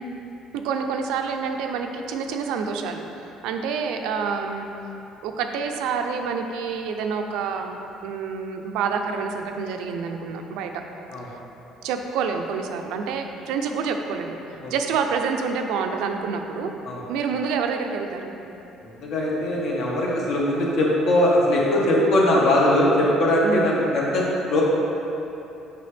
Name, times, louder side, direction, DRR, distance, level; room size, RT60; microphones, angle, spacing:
voice 1, 0.5-3.0 3.4-4.7 5.2-10.7 11.8-14.4 14.7-16.7 17.1-18.3 23.4-23.7, right 5 dB, 85° right, 4 dB, 0.5 m, -27 dB
voice 2, 18.8-24.6, left 1 dB, 65° left, -4 dB, 1.4 m, -21 dB
6.7 x 5.8 x 3.4 m, 3.0 s
cardioid pair, 145°, 0 cm